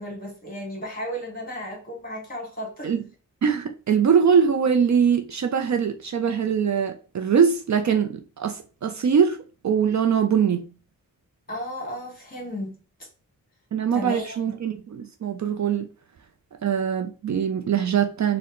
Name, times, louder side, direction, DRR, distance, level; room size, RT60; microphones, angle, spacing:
voice 1, 0.0-2.9 11.5-12.8 13.9-14.5, equal, 25° left, 1.6 m, -34 dB
voice 2, 3.4-10.6 13.7-15.9 16.6-18.4, right 7 dB, 55° right, 0.5 m, -22 dB
3.8 x 2.1 x 4.2 m
wide cardioid pair, 135°, 35 cm